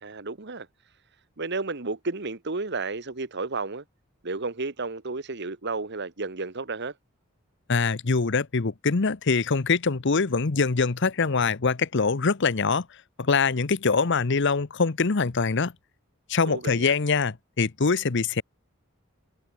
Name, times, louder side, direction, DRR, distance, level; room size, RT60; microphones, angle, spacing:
voice 1, 0.0-0.7 1.4-3.8 4.2-6.9 16.4-16.9, right 3 dB, 55° right, 1.5 m, -32 dB
voice 2, 7.7-12.9 13.2-15.7 16.3-18.4, left 4 dB, 60° left, 0.9 m, -24 dB
head